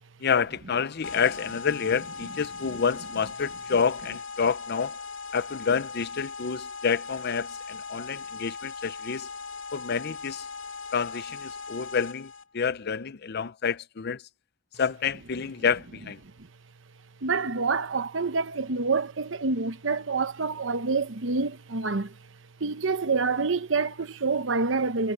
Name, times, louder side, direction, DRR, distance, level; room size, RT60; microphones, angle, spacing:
voice 1, 0.2-5.0 5.3-9.3 9.7-10.5 10.9-14.2 14.8-16.2, left 6 dB, 55° left, 0.6 m, -28 dB
sound 1, 1.0-12.4, left 4 dB, 90° left, 2.9 m, -39 dB
voice 2, 17.2-22.2 22.6-25.1, right 4 dB, 70° right, 1.0 m, -27 dB
head